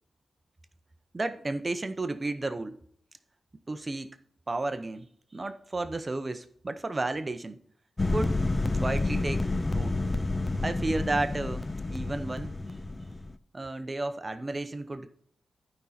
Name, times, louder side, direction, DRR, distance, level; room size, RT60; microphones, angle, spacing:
voice 1, 1.1-2.8 3.7-4.1 4.5-5.1 5.3-7.6 8.1-8.4 8.8-9.5 9.7-10.0 10.6-12.5 13.5-15.2, right 2 dB, 30° right, 11 dB, 0.7 m, -32 dB
sound 1, 8.0-13.3, left 2 dB, 20° left, 0.5 m, -29 dB
12.0 x 5.3 x 4.2 m, 0.62 s
wide cardioid pair, 100°, 0 cm